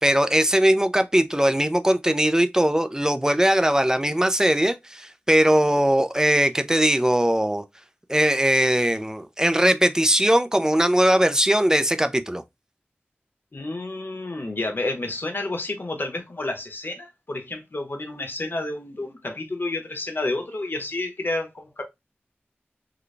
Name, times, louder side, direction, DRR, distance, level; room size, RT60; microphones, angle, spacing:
voice 1, 0.0-7.6 8.1-12.4, right 1 dB, 15° right, 0.4 m, -20 dB
voice 2, 13.5-21.8, left 2 dB, 60° left, 1.0 m, -30 dB
3.9 x 2.2 x 3.2 m
wide cardioid pair, 60°, 4 cm